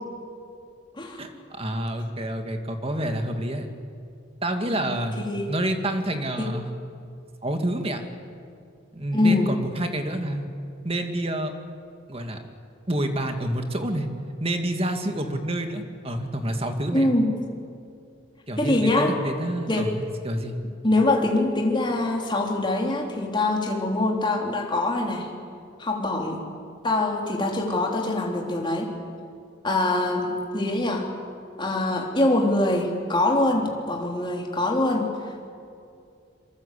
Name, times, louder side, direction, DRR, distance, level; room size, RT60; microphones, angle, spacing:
voice 1, 1.2-3.7 4.4-6.7 7.4-8.0 8.9-10.5 10.8-11.5 12.1-12.4 12.9-14.1 14.4-17.1 18.5-20.6, right 1 dB, 30° right, 5 dB, 2.1 m, -28 dB
voice 2, 4.7-5.5 6.4-6.5 9.1-9.5 16.9-17.3 18.6-19.1 19.7-19.9 20.8-25.3 25.8-26.4 26.8-28.9 29.6-31.1 31.6-35.5, left 2 dB, 25° left, 0 dB, 3.4 m, -24 dB
26.0 x 24.0 x 8.4 m, 2.4 s
head